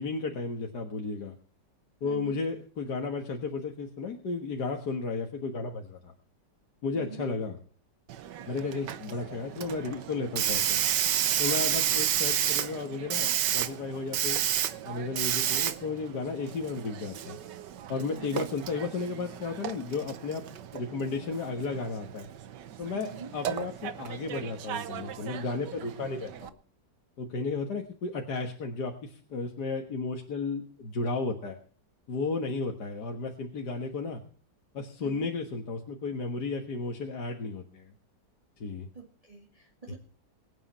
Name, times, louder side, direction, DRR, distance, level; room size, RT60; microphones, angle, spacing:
voice 1, 0.0-1.4 2.0-6.1 6.8-7.6 8.5-10.9 11.4-14.4 14.8-17.4 17.9-20.4 20.7-22.3 22.8-26.6 27.2-31.6 32.1-34.2 34.7-37.9 38.6-38.9 39.9-40.0, left 4 dB, 70° left, 2 dB, 2.1 m, -33 dB
voice 2, 2.0-2.4 6.9-7.3 18.1-18.5 22.9-23.3 35.0-35.3 38.9-39.9, right 6 dB, 20° right, -1 dB, 2.3 m, -44 dB
Hiss, 8.1-26.5, right 10 dB, 80° right, 1.6 m, -32 dB
23.5 x 9.0 x 4.3 m, 0.42 s
omnidirectional pair, 1.9 m